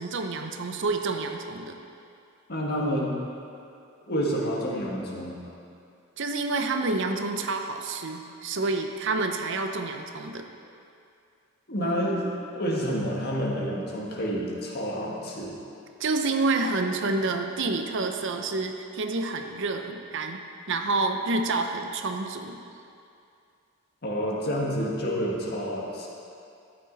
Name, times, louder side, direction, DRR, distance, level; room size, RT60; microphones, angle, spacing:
voice 1, 0.0-1.8 6.2-10.4 16.0-20.4 20.7-22.6, right 3 dB, 60° right, 5 dB, 0.7 m, -28 dB
voice 2, 2.5-3.2 4.1-5.4 11.7-15.5 24.0-26.1, equal, 50° left, -3 dB, 1.8 m, -29 dB
13.0 x 9.1 x 4.0 m, 2.5 s
head